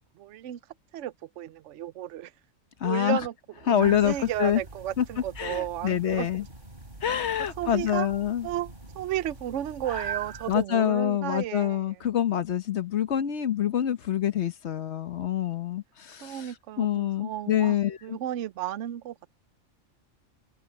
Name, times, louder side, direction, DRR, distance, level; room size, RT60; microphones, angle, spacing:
voice 1, 0.1-0.6 0.9-2.3 2.8-3.3 3.6-6.3 7.4-8.1 8.4-12.1 16.2-19.3, right 12 dB, 70° right, 1.0 m, -34 dB
voice 2, 2.8-3.2 3.7-4.6 5.0-5.1 5.4-6.4 7.0-8.5 10.5-16.4 16.8-18.0, left 10 dB, 60° left, 1.2 m, -26 dB
sound 1, 3.8-10.6, right 4 dB, 40° right, 4.1 m, -42 dB
open air
omnidirectional pair, 1.4 m